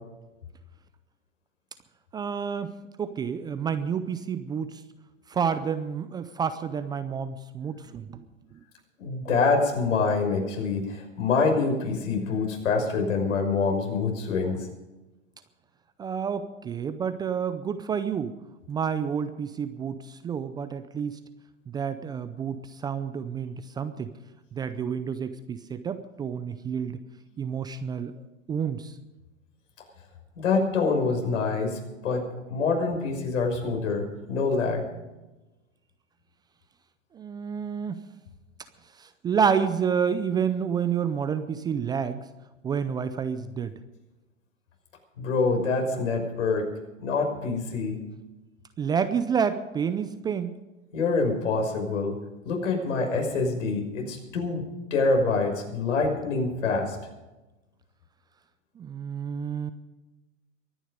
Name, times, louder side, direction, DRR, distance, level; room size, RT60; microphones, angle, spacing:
voice 1, 2.1-2.7 3.0-4.8 5.3-8.2 8.5-8.6 16.0-18.3 18.7-21.2 21.7-24.1 24.5-27.0 27.4-28.1 28.5-29.0 37.1-38.0 38.9-42.2 42.6-43.7 48.8-50.6 58.8-59.7, right 7 dB, 10° right, 11 dB, 0.5 m, -29 dB
voice 2, 9.0-14.6 30.4-34.9 45.2-46.7 47.0-48.0 50.9-52.1 52.4-54.6 54.9-57.0, left 4 dB, 70° left, 3 dB, 6.1 m, -26 dB
23.5 x 10.0 x 5.2 m, 1.1 s
hypercardioid pair, 120°, 39 cm